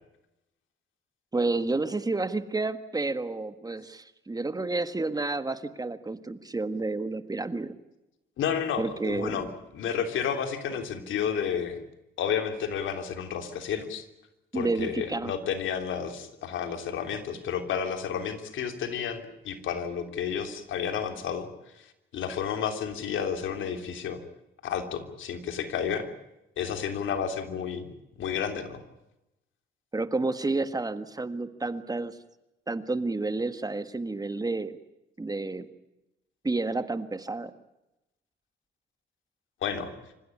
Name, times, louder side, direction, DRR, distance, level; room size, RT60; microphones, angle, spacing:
voice 1, 1.3-7.7 8.8-9.5 14.5-15.3 29.9-32.2 32.7-34.7 35.2-35.7 36.4-37.5, right 3 dB, 20° right, 11 dB, 1.6 m, -30 dB
voice 2, 8.4-11.8 12.2-14.0 14.5-21.5 22.1-24.2 24.6-26.1 26.6-27.9 28.2-28.8 39.6-39.9, left 7 dB, 75° left, 7 dB, 3.4 m, -31 dB
26.5 x 16.0 x 9.9 m, 0.92 s
cardioid pair, 90°, 20 cm